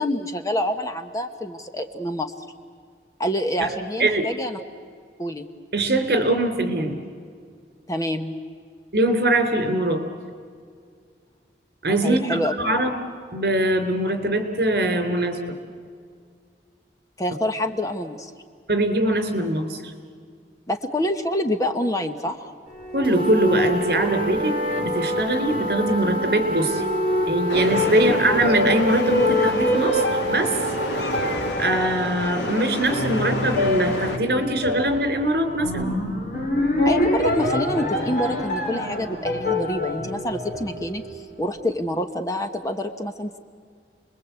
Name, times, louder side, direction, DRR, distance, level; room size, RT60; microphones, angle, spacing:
voice 1, 0.0-2.3 3.2-4.6 5.2-5.5 7.9-8.3 12.0-12.5 17.2-18.3 20.7-22.5 27.9-28.3 36.8-43.4, left 1 dB, 20° left, 7 dB, 1.1 m, -27 dB
voice 2, 5.7-7.0 8.9-10.1 11.8-12.9 13.3-15.6 18.7-19.9 22.9-26.8 27.3-30.6 31.6-35.9, right 1 dB, 60° right, 6 dB, 3.6 m, -22 dB
sound 1, 22.7-41.3, left 1 dB, 50° left, 4.5 m, -26 dB
sound 2, 23.0-31.5, equal, 30° right, 1.5 m, -29 dB
sound 3, 27.5-34.2, left 1 dB, 90° left, 2.5 m, -30 dB
30.0 x 21.5 x 8.3 m, 2.1 s
head